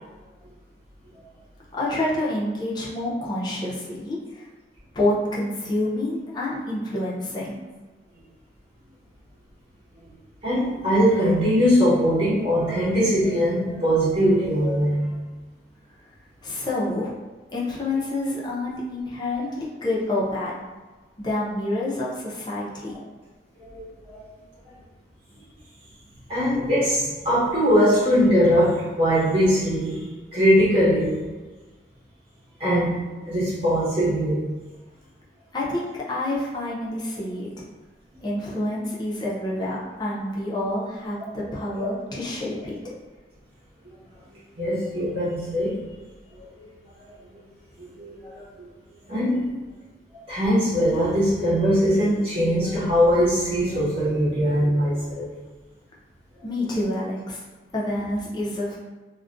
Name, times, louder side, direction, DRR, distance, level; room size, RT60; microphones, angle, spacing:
voice 1, 1.7-4.5 4.9-7.6 16.4-17.1 17.5-20.6 21.2-22.9 35.5-37.5 38.2-42.8 56.4-57.4 57.7-58.8, left 1 dB, 25° left, -5 dB, 0.5 m, -28 dB
voice 2, 10.4-15.1 23.6-24.2 26.3-30.0 30.3-31.2 32.6-33.0 33.3-34.5 41.7-41.9 44.3-45.8 46.3-46.7 47.8-48.4 49.1-49.6 50.3-55.3, equal, 30° right, -12 dB, 0.8 m, -21 dB
2.3 x 2.1 x 2.5 m, 1.3 s
head